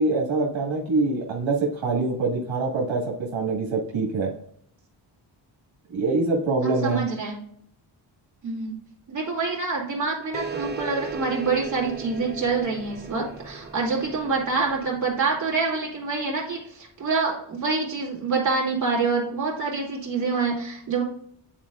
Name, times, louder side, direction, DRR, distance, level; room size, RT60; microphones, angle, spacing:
voice 1, 0.0-4.3 5.9-7.1, right 3 dB, 80° right, -2 dB, 1.9 m, -24 dB
voice 2, 6.6-7.4 8.4-8.8 9.1-21.0, right 4 dB, 40° right, -4 dB, 2.8 m, -26 dB
sound 1, 10.3-15.4, right 4 dB, 20° right, 0.6 m, -37 dB
10.0 x 4.4 x 2.4 m, 0.66 s
wide cardioid pair, 125°, 46 cm